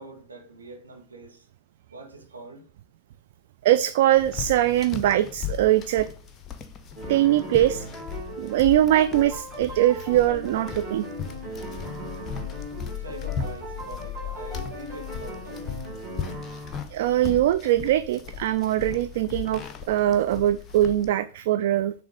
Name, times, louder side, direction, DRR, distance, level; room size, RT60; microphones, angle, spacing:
voice 1, 0.0-1.5 1.9-2.6 12.9-15.7, right 2 dB, 75° right, 1.7 m, -44 dB
voice 2, 3.6-6.1 7.1-7.9 8.4-11.0 16.9-21.9, right 13 dB, 55° right, 0.3 m, -22 dB
sound 1, 4.1-21.1, left 8 dB, 25° left, 0.7 m, -37 dB
sound 2, 7.0-16.8, right 1 dB, 25° right, 2.1 m, -38 dB
6.9 x 3.2 x 5.0 m
figure-of-eight pair, 90°, 0 cm